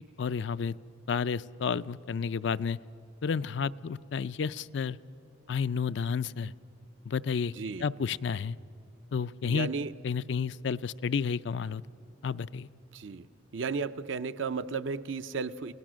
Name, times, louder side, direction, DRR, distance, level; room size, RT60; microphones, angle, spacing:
voice 1, 0.2-0.7 1.1-2.8 3.2-5.0 5.5-6.5 7.1-7.5 7.8-8.6 9.1-9.7 10.0-11.8 12.2-12.7, left 6 dB, 60° left, 16 dB, 0.4 m, -31 dB
voice 2, 7.5-7.9 9.4-9.9 12.9-13.3 13.5-15.7, right 4 dB, 65° right, 10 dB, 0.5 m, -34 dB
29.0 x 18.0 x 6.2 m, 2.8 s
head